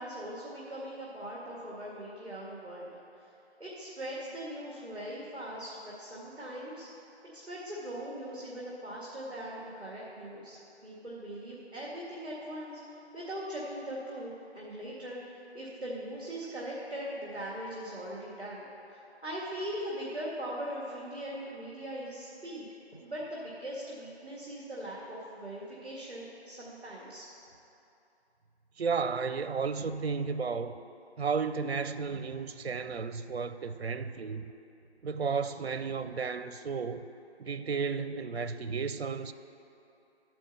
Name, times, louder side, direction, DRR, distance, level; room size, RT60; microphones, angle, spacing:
voice 1, 0.0-3.3 3.6-6.9 7.3-22.6 23.0-27.3 32.6-32.7, right 1 dB, 5° left, 1.1 m, -40 dB
voice 2, 28.8-30.8 31.2-34.4 35.0-37.1 37.4-39.3, right 5 dB, 65° right, 0.5 m, -33 dB
12.0 x 4.5 x 6.9 m
figure-of-eight pair, 170°, 33 cm